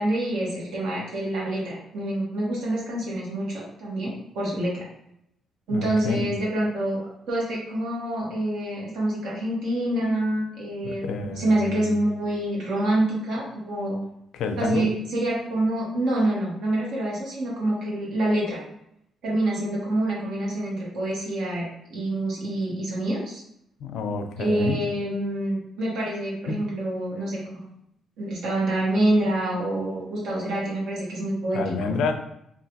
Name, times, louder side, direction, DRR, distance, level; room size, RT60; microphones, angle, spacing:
voice 1, 0.0-4.8 5.7-7.0 7.3-14.0 14.6-18.6 19.2-23.4 24.4-27.6 28.2-31.9, right 1 dB, 70° right, -5 dB, 1.2 m, -26 dB
voice 2, 5.7-6.2 10.8-11.9 14.3-14.9 23.8-24.8 26.5-26.6 31.5-32.1, left 3 dB, 70° left, 6 dB, 0.4 m, -29 dB
3.1 x 2.4 x 2.8 m, 0.77 s
cardioid pair, 180°, 0 cm